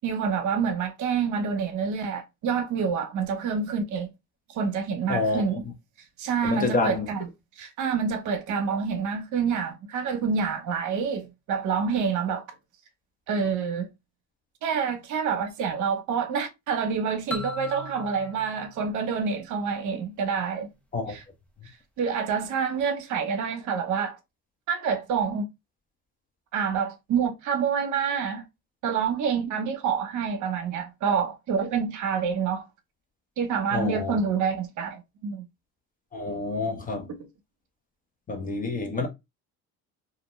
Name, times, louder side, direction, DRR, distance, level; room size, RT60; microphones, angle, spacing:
voice 1, 0.0-4.1 4.5-5.6 6.2-7.2 7.6-12.4 13.3-13.9 14.6-20.7 21.1-21.2 22.0-24.2 24.7-25.5 26.5-28.4 28.8-32.6 33.4-35.4, right 6 dB, 65° right, 0.8 m, -27 dB
voice 2, 5.1-5.7 6.4-7.1 20.9-21.1 33.7-34.2 36.1-37.1 38.3-39.1, left 3 dB, 25° left, 0.8 m, -28 dB
sound 1, 17.3-20.0, left 1 dB, 5° left, 0.4 m, -39 dB
2.5 x 2.1 x 3.0 m
cardioid pair, 105°, 32 cm